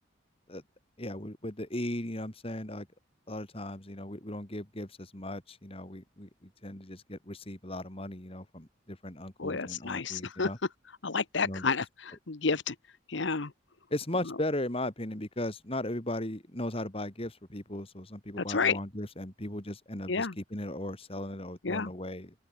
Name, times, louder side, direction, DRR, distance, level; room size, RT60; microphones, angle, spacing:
voice 1, 1.0-2.9 3.3-10.6 11.4-11.7 13.9-22.3, left 1 dB, 30° left, 3.1 m, -37 dB
voice 2, 9.4-10.5 11.0-12.7 13.1-13.5 14.2-14.3 18.4-18.8 20.1-20.4 21.6-21.9, left 4 dB, 70° left, 1.1 m, -30 dB
open air
head